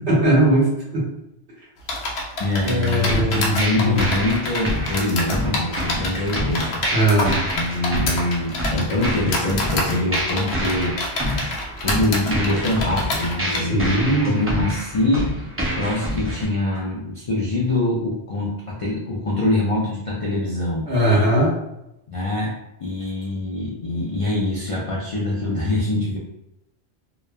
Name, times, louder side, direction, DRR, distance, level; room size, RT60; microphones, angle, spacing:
voice 1, 0.1-1.0 2.6-4.0 6.9-7.4 13.6-14.3 20.9-21.5, right 1 dB, 80° right, -5 dB, 1.2 m, -19 dB
sound 1, 1.9-13.6, left 2 dB, 80° left, 0.9 m, -27 dB
voice 2, 2.4-6.8 7.6-11.0 11.8-15.5 15.8-20.8 22.1-26.2, left 2 dB, 60° left, -4 dB, 0.3 m, -24 dB
sound 2, 3.1-16.4, equal, 25° right, 0.3 m, -27 dB
3.1 x 2.1 x 2.3 m, 0.87 s
omnidirectional pair, 1.1 m